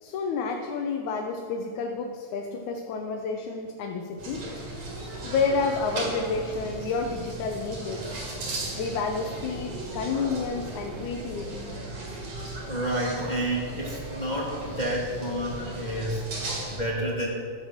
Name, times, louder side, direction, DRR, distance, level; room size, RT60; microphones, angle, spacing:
voice 1, 0.0-4.4 5.2-8.2 8.7-11.8, left 4 dB, 80° left, 3 dB, 2.2 m, -30 dB
sound 1, 4.2-16.8, right 2 dB, 60° right, 3.8 m, -36 dB
voice 2, 12.7-17.3, right 1 dB, 20° left, -3 dB, 1.3 m, -30 dB
14.5 x 6.4 x 7.3 m, 2.2 s
omnidirectional pair, 3.4 m